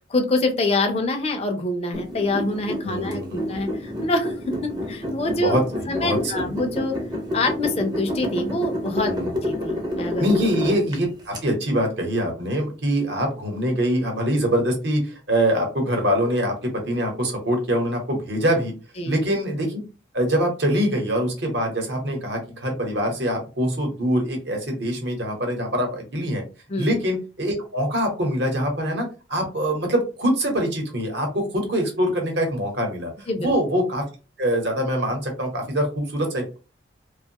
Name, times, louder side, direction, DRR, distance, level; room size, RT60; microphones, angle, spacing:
voice 1, 0.1-4.3 4.9-5.6 5.9-6.9 7.3-9.1 9.4-10.3 19.0-19.2 26.7-26.9 33.3-33.5, left 2 dB, 30° left, 5 dB, 0.4 m, -25 dB
sound 1, 1.9-11.4, left 1 dB, 25° right, 0.5 m, -29 dB
voice 2, 2.8-3.4 5.3-5.6 6.0-6.3 9.1-9.3 10.2-18.7 19.0-19.8 20.1-26.4 26.8-34.0 34.4-36.6, equal, 65° right, 2 dB, 1.0 m, -24 dB
2.6 x 2.3 x 2.7 m, 0.32 s
head